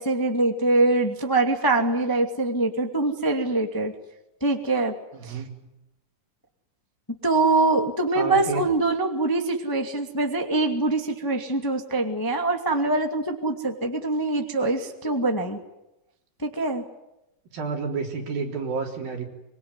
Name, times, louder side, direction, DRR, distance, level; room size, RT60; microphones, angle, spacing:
voice 1, 0.0-3.9 4.4-4.9 5.2-5.3 7.2-15.6 16.4-16.8, right 2 dB, 10° left, 3 dB, 1.4 m, -24 dB
voice 2, 5.1-5.7 8.1-8.7 17.5-19.2, right 4 dB, 75° right, 1 dB, 5.6 m, -30 dB
24.5 x 23.5 x 9.7 m, 0.91 s
omnidirectional pair, 4.2 m